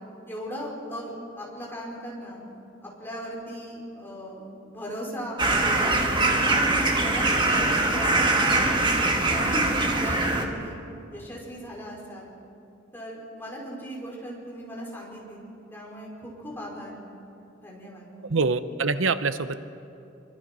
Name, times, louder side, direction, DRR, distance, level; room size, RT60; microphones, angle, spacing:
voice 1, 0.3-2.4 2.8-8.7 9.3-10.8 11.1-12.3 12.9-15.4 15.7-17.0 17.6-18.1, equal, 10° left, -4 dB, 5.4 m, -37 dB
sound 1, 5.4-10.4, right 2 dB, 25° right, 1.9 m, -22 dB
voice 2, 18.3-19.6, right 4 dB, 85° right, 12 dB, 0.8 m, -25 dB
25.0 x 24.5 x 5.5 m, 2.7 s
head